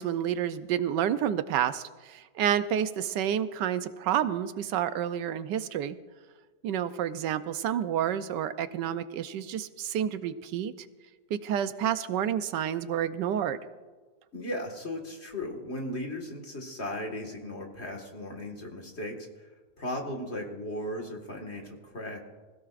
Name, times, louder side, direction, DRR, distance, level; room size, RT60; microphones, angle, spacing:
voice 1, 0.0-6.0 6.6-10.7 11.3-13.6, right 9 dB, 85° right, 12 dB, 1.3 m, -29 dB
voice 2, 14.3-19.5 19.8-22.2, left 1 dB, 40° left, 1 dB, 2.0 m, -36 dB
25.5 x 16.0 x 2.5 m, 1.3 s
omnidirectional pair, 1.8 m